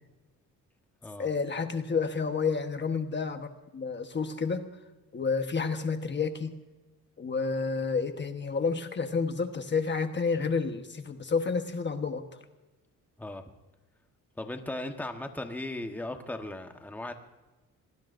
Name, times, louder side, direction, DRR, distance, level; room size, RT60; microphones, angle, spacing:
voice 1, 1.2-4.6 5.1-6.6 7.2-12.2, left 5 dB, 30° left, 7 dB, 1.2 m, -30 dB
voice 2, 14.4-17.1, left 1 dB, 5° left, 5 dB, 1.2 m, -37 dB
27.0 x 19.5 x 2.6 m, 1.1 s
cardioid pair, 120°, 34 cm